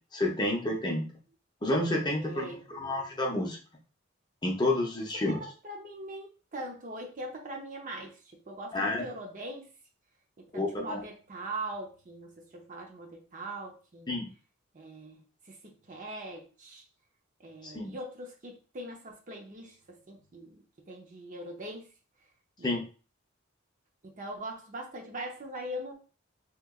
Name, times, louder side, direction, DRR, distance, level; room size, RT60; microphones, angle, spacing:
voice 1, 0.1-1.1 1.6-3.6 4.4-5.4 8.7-9.0 10.5-11.0 14.1-14.3 17.6-17.9 22.6-22.8, left 1 dB, 20° left, 0 dB, 0.6 m, -29 dB
voice 2, 2.1-3.2 5.3-9.7 10.4-14.1 14.7-16.9 17.4-21.9 22.6-22.8 24.0-26.0, right 1 dB, 40° right, 1 dB, 0.6 m, -42 dB
2.9 x 2.3 x 3.6 m, 0.36 s
head